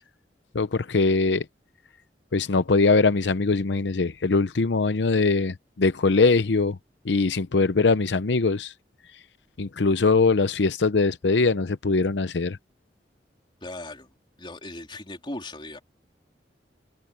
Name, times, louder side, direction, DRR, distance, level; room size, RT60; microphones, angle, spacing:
voice 1, 0.5-1.4 2.3-6.8 7.0-8.7 9.6-12.6, left 3 dB, 85° left, 0.7 m, -22 dB
voice 2, 13.6-14.1 14.4-15.8, left 2 dB, 30° left, 3.5 m, -38 dB
head